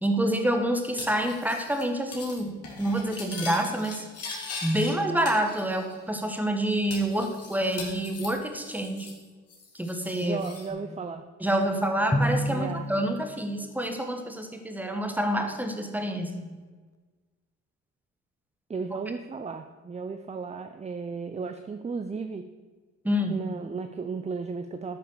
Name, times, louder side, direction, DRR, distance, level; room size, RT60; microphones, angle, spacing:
voice 1, 0.0-4.0 4.6-9.1 9.7-10.4 11.4-16.4 23.0-23.4, right 1 dB, 5° right, 5 dB, 1.6 m, -27 dB
Cutlery silverware, 1.0-1.8 2.1-2.4 2.6-4.9 5.3-6.0 6.3-6.4 6.9-9.2 9.5-10.7, left 3 dB, 55° left, 3.1 m, -40 dB
voice 2, 10.2-11.2 12.5-12.9 18.7-22.4 23.3-25.0, right 4 dB, 20° right, 8 dB, 0.6 m, -34 dB
Drum, 12.1-14.3, equal, 10° left, 0.8 m, -30 dB
12.0 x 5.6 x 6.6 m, 1.4 s
cardioid pair, 90°, 30 cm